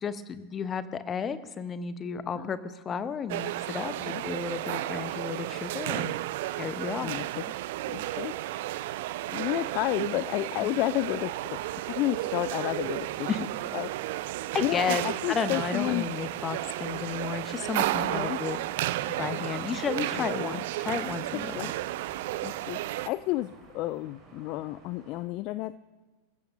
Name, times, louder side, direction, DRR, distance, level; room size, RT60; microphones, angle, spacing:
voice 1, 0.0-6.1 6.6-7.2 13.3-13.4 14.5-15.0 15.3-18.6 19.2-21.7, left 6 dB, 25° left, 14 dB, 0.8 m, -33 dB
sound 1, 3.3-23.1, right 16 dB, 50° right, 0.5 m, -33 dB
voice 2, 7.0-7.5 7.9-8.4 9.3-13.5 13.7-13.9 14.6-16.1 18.0-18.4 19.2-19.5 20.1-20.6 21.3-21.7 22.4-22.8 23.1-25.8, left 17 dB, 40° left, 16 dB, 0.3 m, -32 dB
sound 2, 11.3-25.2, right 3 dB, 35° right, 5.3 m, -52 dB
26.0 x 15.0 x 2.6 m, 1.4 s
figure-of-eight pair, 90°, 0 cm